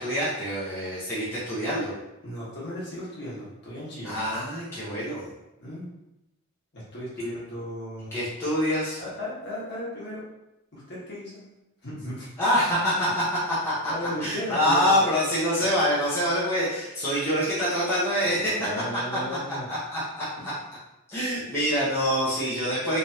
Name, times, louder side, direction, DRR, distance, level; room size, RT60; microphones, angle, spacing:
voice 1, 0.0-1.9 4.0-5.3 8.1-9.0 12.4-13.9 14.2-18.5 19.1-19.2 19.7-20.3 21.1-23.0, equal, 10° left, -11 dB, 1.0 m, -25 dB
voice 2, 2.2-4.2 5.6-5.9 6.7-8.1 9.0-10.2 10.7-11.4 11.8-12.3 13.9-15.1 15.6-15.7 18.2-19.7 20.4-20.5, equal, 50° left, -8 dB, 1.4 m, -36 dB
3.4 x 3.3 x 2.8 m, 0.92 s
head